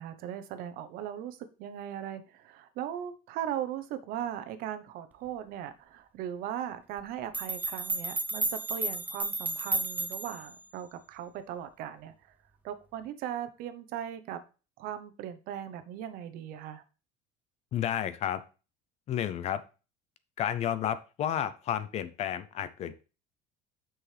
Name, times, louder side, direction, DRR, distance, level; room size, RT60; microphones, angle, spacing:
voice 1, 0.0-12.3 12.6-14.4 14.8-16.8, right 10 dB, 60° right, 10 dB, 0.9 m, -38 dB
sound 1, 7.0-7.1 7.3-10.5, right 3 dB, 10° right, 0.7 m, -32 dB
voice 2, 17.7-18.4 19.1-19.6 20.4-23.0, left 10 dB, 40° left, 14 dB, 0.6 m, -31 dB
7.5 x 6.2 x 3.3 m, 0.33 s
cardioid pair, 155°, 17 cm